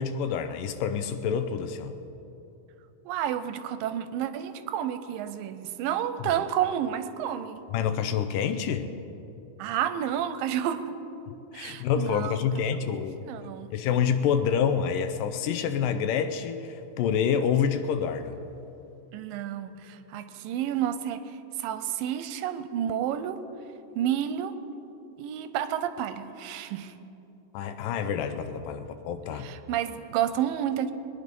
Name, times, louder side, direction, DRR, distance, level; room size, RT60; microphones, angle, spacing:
voice 1, 0.0-2.0 6.2-6.3 7.7-8.9 11.5-13.2 13.7-18.4 27.5-29.5, left 7 dB, 80° left, 9 dB, 2.3 m, -27 dB
voice 2, 3.1-7.6 9.6-11.0 11.5-12.4 12.7-13.7 19.1-23.4 24.0-24.6 25.2-26.9 29.3-30.9, right 10 dB, 85° right, 11 dB, 2.4 m, -30 dB
21.5 x 10.0 x 5.3 m, 2.9 s
omnidirectional pair, 3.9 m